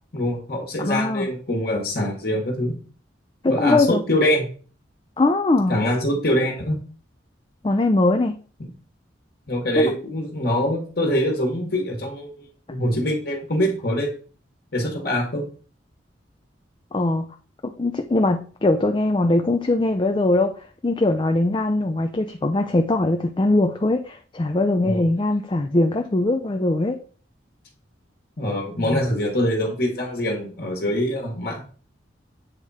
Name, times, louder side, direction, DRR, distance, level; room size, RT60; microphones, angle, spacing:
voice 1, 0.1-2.8 3.5-4.5 5.7-6.8 8.6-8.7 9.5-14.1 14.7-15.4 24.8-25.0 28.4-31.6, left 1 dB, 55° left, 0 dB, 1.5 m, -24 dB
voice 2, 0.8-1.3 3.4-4.0 5.2-5.8 7.6-8.3 9.8-9.9 16.9-17.3 17.8-20.5 20.8-27.0 28.8-29.0, left 2 dB, 25° left, 5 dB, 0.4 m, -21 dB
8.1 x 3.6 x 4.2 m, 0.41 s
head